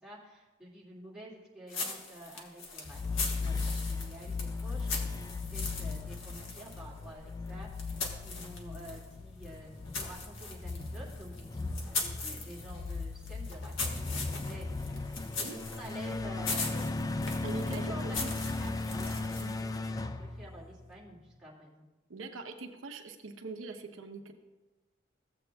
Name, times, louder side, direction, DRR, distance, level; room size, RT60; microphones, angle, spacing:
voice 1, 0.0-16.7 17.7-21.8, right 1 dB, 5° right, -6 dB, 2.1 m, -50 dB
sound 1, 1.7-9.1 9.4-19.7, left 3 dB, 80° left, 1.3 m, -40 dB
sound 2, 2.9-21.0, left 3 dB, 20° left, 0.3 m, -37 dB
voice 2, 15.2-15.6 17.4-18.3 19.4-19.6 22.1-24.3, right 3 dB, 85° right, 5 dB, 0.8 m, -43 dB
15.0 x 7.8 x 2.3 m, 1.1 s
head